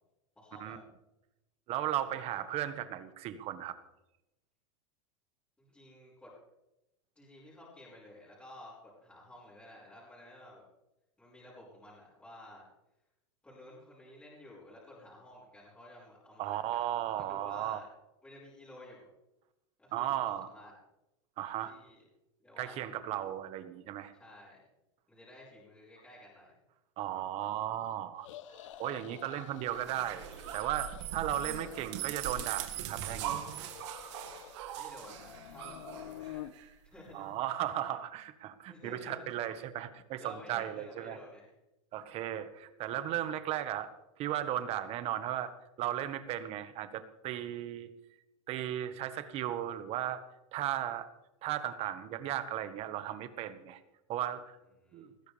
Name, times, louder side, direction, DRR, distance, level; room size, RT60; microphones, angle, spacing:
voice 1, 0.4-0.8 2.0-2.5 5.6-6.3 7.2-10.6 11.2-12.7 13.4-17.9 18.2-19.0 19.8-20.7 21.6-22.0 22.4-22.9 24.1-24.6 25.1-26.5 29.2-29.5 31.5-31.8 34.7-36.4 36.8-37.3 38.7-39.3 40.2-41.5 54.8-55.1, left 1 dB, 5° left, -7 dB, 5.3 m, -53 dB
voice 2, 1.7-3.8 16.4-17.8 19.9-20.5 21.4-21.7 22.6-24.1 27.0-28.3 28.8-30.2 30.5-33.5 37.1-41.2 41.9-43.9 44.2-45.5 45.8-47.9 48.5-50.2 50.5-51.1 51.4-53.8 54.1-54.6 54.9-55.1, right 12 dB, 40° right, 11 dB, 1.4 m, -36 dB
sound 1, 28.2-29.9 30.2-31.0 31.3-32.7 33.0-34.6 35.0-36.5, left 13 dB, 75° left, 0.9 m, -49 dB
sound 2, 29.7-36.7, right 11 dB, 65° right, 2.1 m, -40 dB
20.0 x 15.0 x 3.4 m, 0.93 s
supercardioid pair, 140°, 16 cm